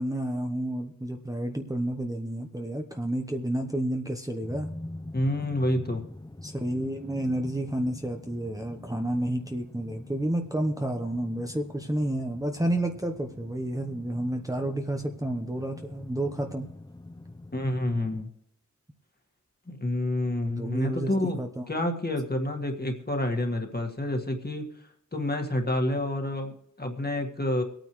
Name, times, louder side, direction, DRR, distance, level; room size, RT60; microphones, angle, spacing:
voice 1, 0.0-4.7 6.4-16.7 20.5-21.6, right 1 dB, 10° right, 3 dB, 0.9 m, -30 dB
sound 1, 4.4-18.2, left 1 dB, 15° left, 0.7 m, -45 dB
voice 2, 5.1-6.0 17.5-18.3 19.7-21.4 21.7-24.7 25.1-27.6, left 1 dB, 30° left, 3 dB, 1.8 m, -28 dB
24.5 x 9.1 x 3.2 m, 0.75 s
wide cardioid pair, 75°, 30 cm